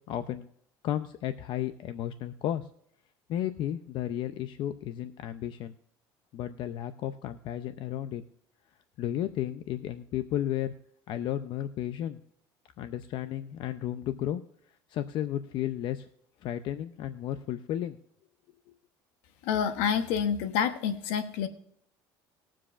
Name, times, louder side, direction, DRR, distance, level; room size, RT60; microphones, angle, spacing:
voice 1, 0.1-0.5 0.8-2.7 3.3-5.7 6.3-8.2 9.0-10.7 11.1-12.2 12.8-14.4 14.9-16.1 16.4-18.0 18.7-18.8, left 11 dB, 60° left, 10 dB, 0.6 m, -33 dB
voice 2, 19.4-21.5, left 7 dB, 85° left, 9 dB, 1.1 m, -28 dB
21.0 x 7.5 x 2.5 m, 0.68 s
cardioid pair, 125°, 9 cm